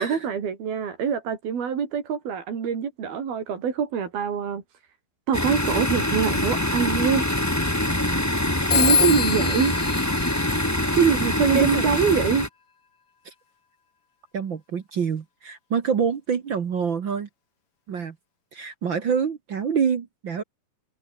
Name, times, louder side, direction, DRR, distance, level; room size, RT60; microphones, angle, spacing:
voice 1, 0.0-4.6 5.3-7.3 8.7-9.8 11.0-12.5, right 7 dB, 85° right, 5.6 m, -24 dB
sound 1, 5.3-12.5, left 1 dB, 5° left, 1.4 m, -24 dB
Telephone, 8.7-11.2, left 6 dB, 40° left, 3.8 m, -25 dB
voice 2, 11.5-11.8 14.3-17.3 17.9-18.1 18.5-20.4, right 6 dB, 50° right, 1.4 m, -26 dB
omnidirectional pair, 4.2 m